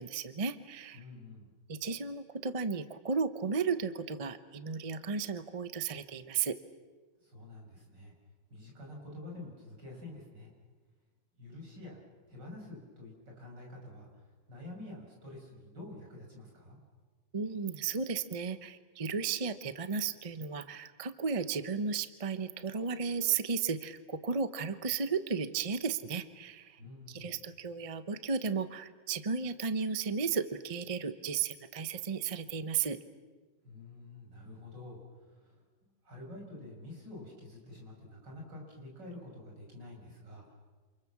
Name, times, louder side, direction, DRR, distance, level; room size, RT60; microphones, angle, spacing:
voice 1, 0.0-1.0 1.7-6.6 17.3-26.8 27.1-33.0, right 5 dB, 35° right, 11 dB, 0.5 m, -34 dB
voice 2, 0.9-1.5 7.2-8.1 8.5-10.5 11.4-12.0 12.3-14.2 14.5-16.8 26.8-27.4 33.6-35.6 36.0-40.6, left 2 dB, 55° right, -1 dB, 7.6 m, -48 dB
28.0 x 28.0 x 7.3 m, 1.4 s
omnidirectional pair, 2.2 m